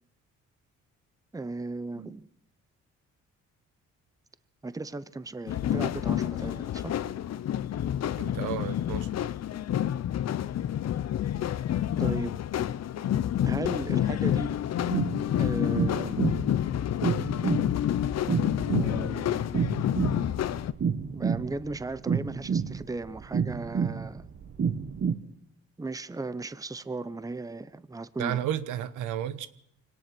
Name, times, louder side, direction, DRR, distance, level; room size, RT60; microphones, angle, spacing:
voice 1, 1.3-2.3 4.6-6.9 12.0-12.4 13.4-14.6 15.4-16.3 18.7-19.5 21.1-24.2 25.8-28.5, right 3 dB, 10° right, 0.8 m, -36 dB
sound 1, 5.5-20.7, left 11 dB, 60° left, 0.9 m, -29 dB
voice 2, 8.2-9.1 28.2-29.5, right 11 dB, 90° right, 1.2 m, -32 dB
sound 2, 14.8-25.1, right 6 dB, 40° right, 1.6 m, -30 dB
24.0 x 18.5 x 6.2 m
cardioid pair, 90°, 30 cm